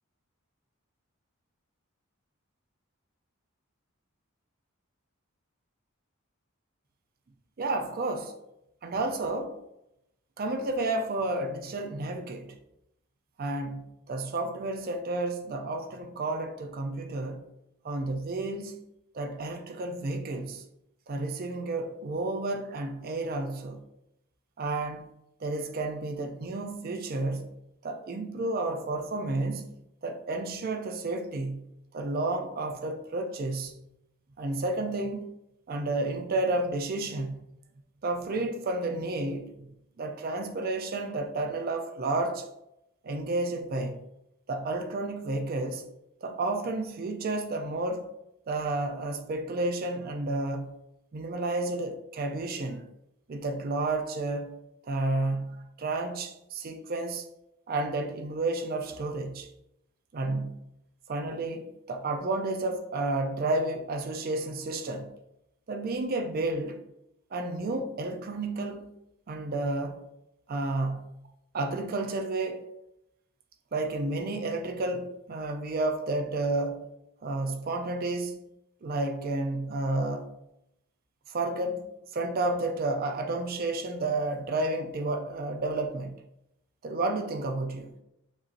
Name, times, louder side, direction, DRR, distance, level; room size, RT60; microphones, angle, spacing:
voice 1, 7.6-8.3 8.8-9.6 10.4-12.6 13.4-17.5 17.8-18.8 19.1-20.6 21.1-23.8 24.6-25.1 25.4-27.5 27.8-29.7 30.0-31.6 31.9-33.7 34.4-35.3 35.7-37.4 38.0-42.5 43.0-44.0 44.5-45.8 46.2-48.1 48.5-50.7 51.1-52.8 53.3-54.6 54.9-57.3 57.7-59.5 60.1-60.6 61.1-65.1 65.7-66.8 67.3-69.0 69.3-70.0 70.5-71.0 71.5-72.6 73.7-76.9 77.2-78.5 78.8-80.3 81.3-86.2 86.8-87.9, right 2 dB, 45° right, 0.4 m, -31 dB
6.9 x 2.7 x 2.5 m
head